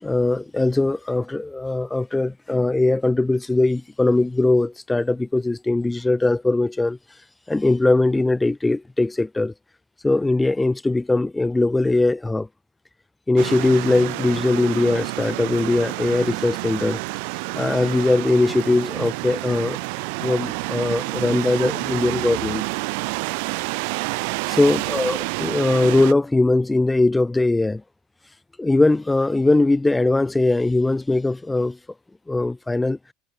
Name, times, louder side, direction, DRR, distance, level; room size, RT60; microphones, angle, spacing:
voice 1, 0.0-7.0 7.5-9.5 10.0-12.5 13.3-17.0 17.5-19.8 20.2-22.6 24.4-27.8 28.6-31.8 32.3-33.0, left 2 dB, 10° left, 0.8 m, -20 dB
sound 1, 13.4-26.1, right 32 dB, 65° right, 1.3 m, -29 dB
hypercardioid pair, 80°, 0 cm